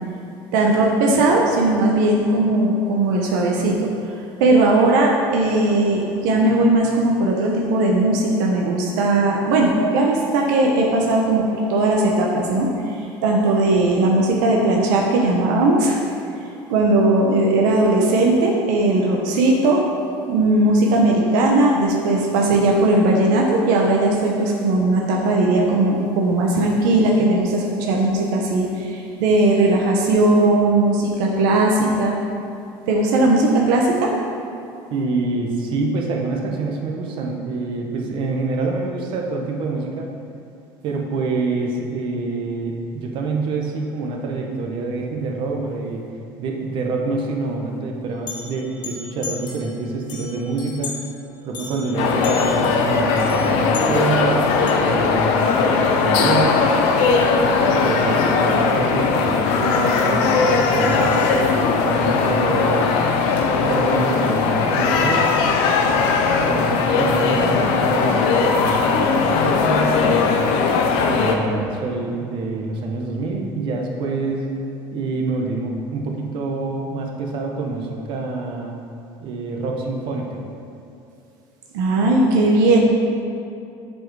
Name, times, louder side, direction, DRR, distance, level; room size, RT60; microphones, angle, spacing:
voice 1, 0.5-3.9 4.4-16.0 16.7-19.8 20.3-32.2 32.9-34.1 81.7-82.8, right 2 dB, 90° right, -1 dB, 0.9 m, -18 dB
voice 2, 34.9-40.1 40.8-46.0 46.4-51.0 51.4-56.7 57.6-62.9 63.5-65.4 66.4-70.3 71.1-74.5 74.9-78.7 79.2-80.4, right 3 dB, 55° right, 0 dB, 1.0 m, -26 dB
sound 1, 48.3-49.7 50.1-51.1 51.5-54.7, left 5 dB, 50° left, 1.4 m, -36 dB
sound 2, 51.9-71.3, left 4 dB, 75° left, 0.7 m, -19 dB
7.6 x 4.5 x 4.7 m, 2.7 s
supercardioid pair, 115°, 10 cm